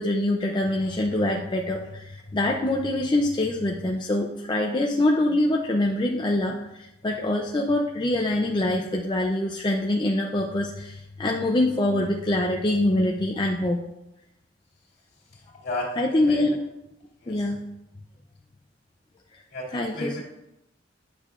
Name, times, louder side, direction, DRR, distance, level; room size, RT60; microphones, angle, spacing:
voice 1, 0.0-13.8 16.0-16.6 17.3-17.6 19.7-20.2, left 1 dB, 25° left, 0 dB, 0.5 m, -24 dB
voice 2, 15.6-16.0 16.3-16.4 17.2-17.4 19.5-20.2, left 1 dB, 65° left, -3 dB, 2.2 m, -32 dB
10.0 x 6.4 x 2.5 m, 0.89 s
head